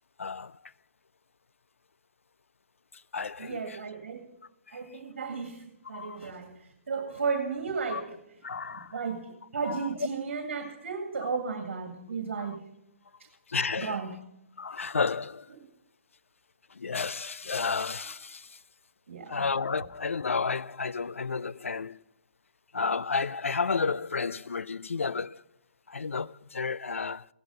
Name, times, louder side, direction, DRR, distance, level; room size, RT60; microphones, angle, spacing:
voice 1, 0.2-0.6 3.1-3.8 5.9-6.3 7.9-8.0 8.4-9.0 9.6-9.8 12.4-12.5 13.5-14.0 14.6-15.5 16.7-18.6 19.3-22.0 22.7-25.4 25.9-27.3, left 5 dB, 75° left, 0.4 m, -31 dB
voice 2, 3.4-4.3 4.7-8.1 8.9-12.6 13.2-13.3 13.8-14.2 19.1-19.4, right 5 dB, 60° right, 2.0 m, -34 dB
16.0 x 12.0 x 5.5 m
figure-of-eight pair, 130°, 7 cm